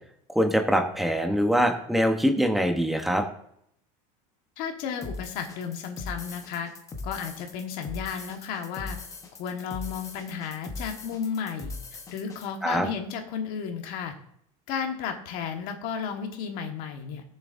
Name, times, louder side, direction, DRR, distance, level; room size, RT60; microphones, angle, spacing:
voice 1, 0.3-3.2 12.6-12.9, equal, ahead, 4 dB, 0.9 m, -23 dB
voice 2, 4.6-6.7 7.0-9.0 9.4-11.7 12.1-14.1 14.7-17.2, left 7 dB, 55° left, 4 dB, 1.4 m, -33 dB
sound 1, 5.0-12.5, left 3 dB, 20° left, 1.1 m, -40 dB
18.0 x 7.1 x 2.6 m, 0.71 s
cardioid pair, 165°, 17 cm